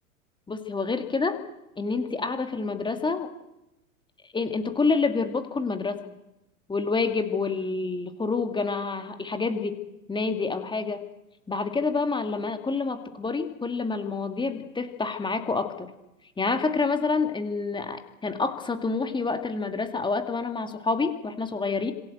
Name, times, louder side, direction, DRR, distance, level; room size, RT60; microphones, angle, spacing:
voice 1, 0.5-1.4 1.8-3.3 4.3-6.1 6.7-9.8 10.1-11.1 11.5-15.9 16.4-21.9, left 4 dB, 10° left, 7 dB, 2.4 m, -28 dB
26.5 x 17.0 x 7.9 m, 0.91 s
figure-of-eight pair, 100°, 44 cm